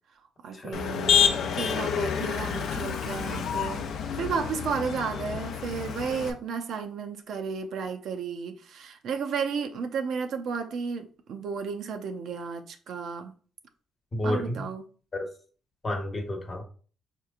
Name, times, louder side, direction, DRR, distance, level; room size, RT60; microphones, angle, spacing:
voice 1, 0.4-3.9 4.2-13.4 14.2-14.8, right 5 dB, 70° right, 0.5 m, -33 dB
Motor vehicle (road), 0.7-6.3, left 8 dB, 70° left, 0.4 m, -28 dB
voice 2, 14.1-14.7 15.1-15.3 15.8-16.6, left 1 dB, 35° left, 0.9 m, -31 dB
4.5 x 3.0 x 2.4 m
cardioid pair, 90°, 0 cm